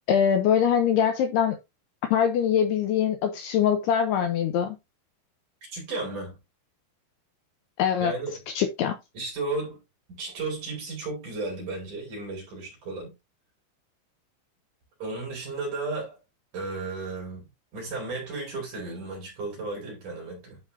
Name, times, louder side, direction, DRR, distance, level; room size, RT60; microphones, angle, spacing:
voice 1, 0.1-1.6 2.1-4.8 7.8-8.1 8.5-9.0, left 8 dB, 75° left, 2.5 m, -23 dB
voice 2, 5.7-6.4 8.0-8.4 9.1-9.8 10.1-13.1 15.0-16.2 16.5-17.5 17.7-20.6, right 3 dB, 45° right, 5.5 m, -34 dB
11.0 x 5.5 x 2.7 m
omnidirectional pair, 5.4 m